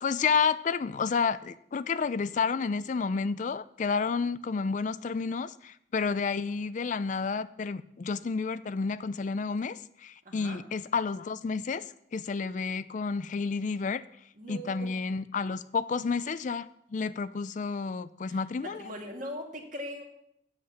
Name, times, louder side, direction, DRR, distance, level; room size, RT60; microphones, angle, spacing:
voice 1, 0.0-11.8 12.1-14.0 14.5-18.9, left 5 dB, 40° left, 15 dB, 0.4 m, -30 dB
voice 2, 10.3-10.6 14.4-14.9 18.3-20.0, equal, 45° right, 1 dB, 1.9 m, -40 dB
7.6 x 7.4 x 8.0 m, 0.72 s
head